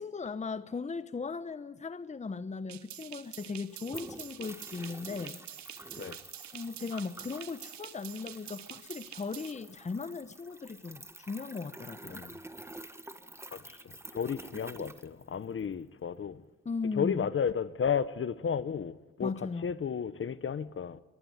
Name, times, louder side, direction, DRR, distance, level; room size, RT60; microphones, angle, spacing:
voice 1, 0.0-5.4 6.5-12.2 16.6-17.3 19.2-19.7, left 4 dB, 25° left, 1.1 m, -37 dB
sound 1, 2.7-2.8 2.9-15.7, right 1 dB, 10° right, 1.7 m, -49 dB
sound 2, 2.7-9.5, right 12 dB, 65° right, 1.0 m, -47 dB
voice 2, 12.0-12.4 13.5-13.8 14.1-16.4 17.0-19.3 19.6-21.0, left 7 dB, 45° left, 1.2 m, -33 dB
23.5 x 19.5 x 9.7 m
cardioid pair, 90°, 30 cm